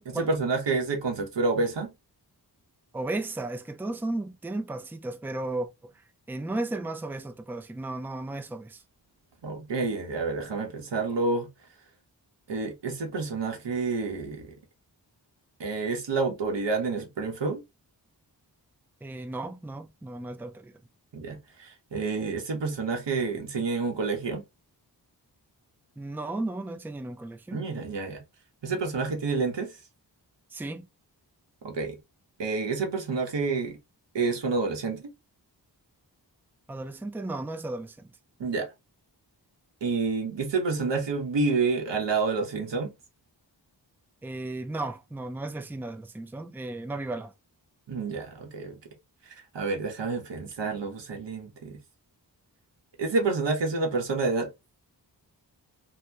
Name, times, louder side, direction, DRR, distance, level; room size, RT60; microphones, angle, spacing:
voice 1, 0.0-1.9 9.4-11.5 12.5-14.6 15.6-17.6 21.1-24.4 27.5-28.2 28.6-29.8 31.6-32.0 32.4-33.8 34.1-35.1 38.4-38.7 39.8-42.9 47.9-48.8 49.2-51.8 53.0-54.5, right 4 dB, 85° right, 1.1 m, -29 dB
voice 2, 2.9-8.8 19.0-20.8 26.0-27.6 30.5-30.9 36.7-38.1 44.2-47.3, right 2 dB, 5° right, 0.4 m, -35 dB
2.8 x 2.2 x 3.3 m
wide cardioid pair, 70°, 42 cm